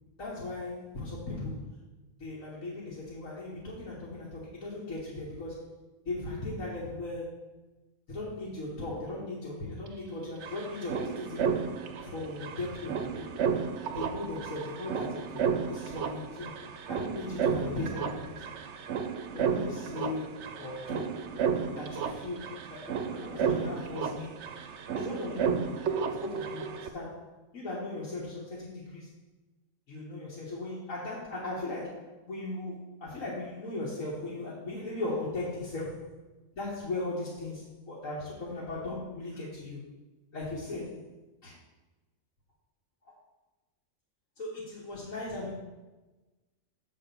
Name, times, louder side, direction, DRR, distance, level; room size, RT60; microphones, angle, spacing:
voice 1, 0.2-1.8 2.2-7.5 8.1-11.5 12.0-13.3 13.9-16.6 16.9-18.4 19.3-21.2 21.8-24.4 24.9-25.8 26.1-27.2 27.5-29.1 29.9-36.1 36.6-39.8 40.3-41.0 41.4-41.6 43.0-43.1 44.4-45.5, left 2 dB, 70° left, -6 dB, 1.9 m, -38 dB
sound 1, 9.9-10.0 10.1-26.9, right 6 dB, 60° right, 0.9 m, -33 dB
6.9 x 4.3 x 6.8 m, 1.2 s
omnidirectional pair, 1.5 m